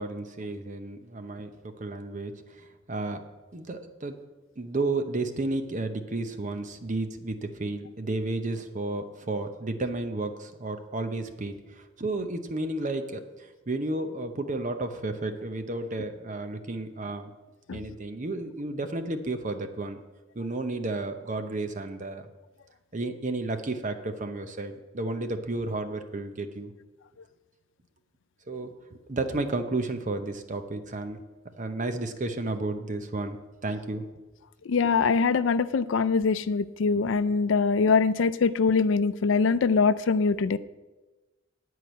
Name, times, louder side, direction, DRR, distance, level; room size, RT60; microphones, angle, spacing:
voice 1, 0.0-3.2 3.5-4.2 4.6-13.3 13.7-17.3 17.7-20.0 20.3-22.3 22.9-26.7 28.5-28.7 29.1-31.2 31.6-33.4 33.6-34.1 34.7-34.8, right 2 dB, 40° right, 8 dB, 0.8 m, -32 dB
voice 2, 34.7-40.6, left 5 dB, 75° left, 15 dB, 0.4 m, -23 dB
10.5 x 4.7 x 8.0 m, 1.1 s
head